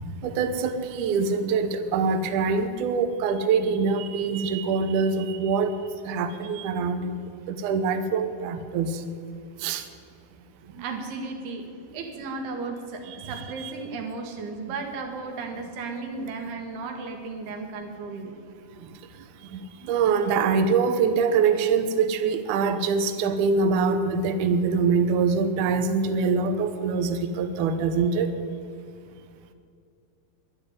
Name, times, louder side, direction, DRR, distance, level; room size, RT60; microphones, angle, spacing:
voice 1, 0.2-5.8 6.1-9.0 9.6-9.9 13.1-13.7 18.8-18.9 19.4-28.3, right 5 dB, 75° right, 9 dB, 2.0 m, -24 dB
voice 2, 10.8-11.7 11.9-18.4, right 3 dB, 90° right, 3 dB, 3.6 m, -35 dB
11.0 x 9.9 x 9.3 m, 2.4 s
omnidirectional pair, 4.4 m